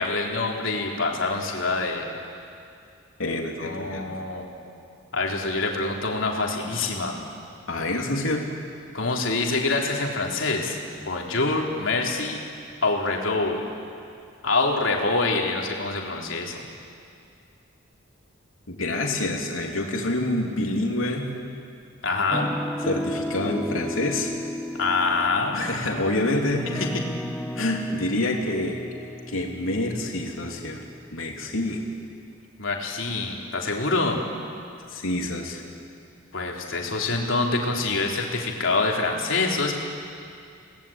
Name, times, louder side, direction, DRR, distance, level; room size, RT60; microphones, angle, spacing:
voice 1, 0.0-2.0 3.6-4.5 5.1-7.2 8.9-12.4 12.8-13.6 14.4-16.5 22.0-22.5 24.8-25.6 32.6-34.2 36.3-39.7, left 3 dB, 70° left, 0 dB, 3.5 m, -25 dB
voice 2, 3.2-4.0 7.7-8.5 18.7-21.3 22.8-24.3 25.5-26.9 27.5-28.8 29.3-30.8 31.1-31.8 34.9-35.6, left 2 dB, 85° left, 1 dB, 3.2 m, -27 dB
sound 1, 22.3-31.5, equal, 5° left, 0.8 m, -34 dB
29.5 x 19.0 x 8.8 m, 2.4 s
head